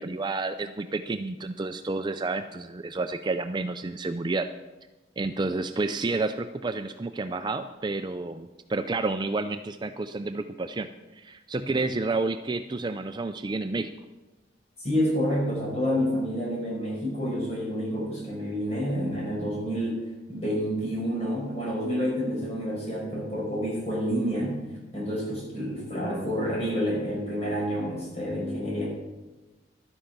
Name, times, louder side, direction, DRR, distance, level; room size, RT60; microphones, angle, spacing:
voice 1, 0.0-4.5 5.2-13.9 26.0-26.3, right 3 dB, 25° right, 8 dB, 0.4 m, -30 dB
voice 2, 14.8-24.6 24.9-28.9, equal, 35° left, -4 dB, 5.4 m, -29 dB
12.0 x 9.9 x 5.8 m, 1.1 s
head